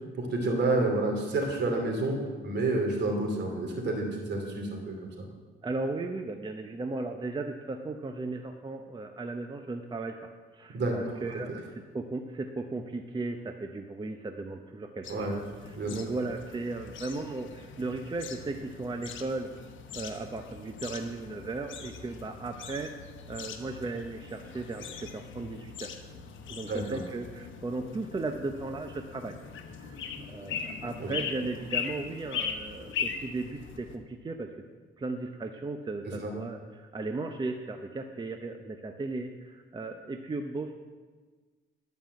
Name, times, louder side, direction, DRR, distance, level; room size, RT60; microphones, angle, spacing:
voice 1, 0.2-5.3 10.7-11.4 15.1-15.3 15.8-16.0 26.7-27.0 31.0-31.1 36.2-36.3, right 2 dB, 60° right, 1 dB, 2.8 m, -29 dB
voice 2, 5.6-19.5 19.9-22.9 23.3-25.9 26.5-29.4 29.8-34.5 35.0-40.7, right 3 dB, 25° right, 5 dB, 0.8 m, -36 dB
sound 1, 15.0-34.0, left 7 dB, 75° left, 1.0 m, -40 dB
11.5 x 5.5 x 7.6 m, 1.4 s
cardioid pair, 90°, 20 cm